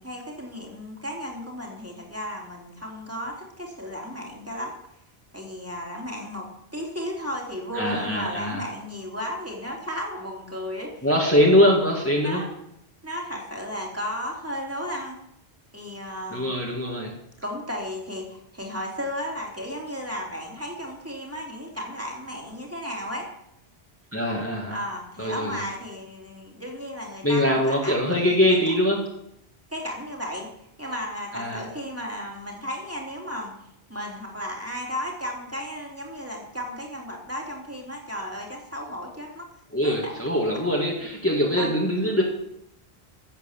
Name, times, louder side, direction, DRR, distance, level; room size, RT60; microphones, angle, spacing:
voice 1, 0.0-4.8 5.3-6.5 6.7-11.4 12.2-12.5 13.0-15.2 15.7-16.5 17.4-23.3 24.7-28.7 29.7-30.5 30.8-33.5 33.9-39.5 39.8-40.1 41.6-41.7, equal, 15° right, -1 dB, 3.2 m, -34 dB
voice 2, 7.7-8.6 11.0-12.4 16.3-17.1 24.1-24.8 25.2-25.6 27.2-29.0 31.3-31.6 39.7-42.2, left 1 dB, 15° left, -3 dB, 2.3 m, -22 dB
15.0 x 8.2 x 7.4 m, 0.78 s
omnidirectional pair, 1.0 m